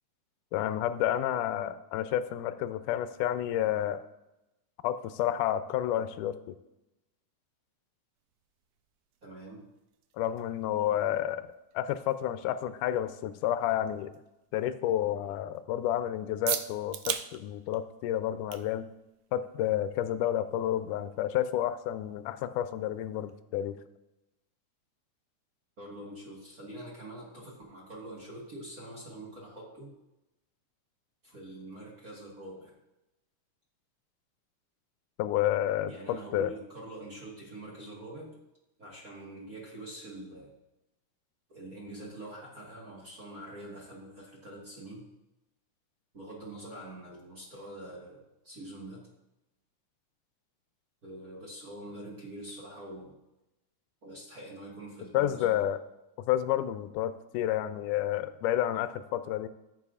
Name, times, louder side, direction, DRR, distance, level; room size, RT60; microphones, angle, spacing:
voice 1, 0.5-4.0 4.8-6.6 10.2-11.5 11.7-14.1 14.5-18.9 19.3-23.8 35.2-36.5 55.1-55.8 56.2-59.5, left 12 dB, 90° left, 12 dB, 2.1 m, -30 dB
sound 1, 8.1-23.4, right 11 dB, 85° right, 1.5 m, -44 dB
voice 2, 9.2-9.6 25.8-30.0 31.2-32.7 35.9-38.4 38.8-40.5 41.5-45.1 46.1-49.0 51.0-53.2 54.0-55.6, right 1 dB, 40° right, -4 dB, 1.4 m, -45 dB
14.0 x 7.6 x 2.4 m, 0.96 s
omnidirectional pair, 3.5 m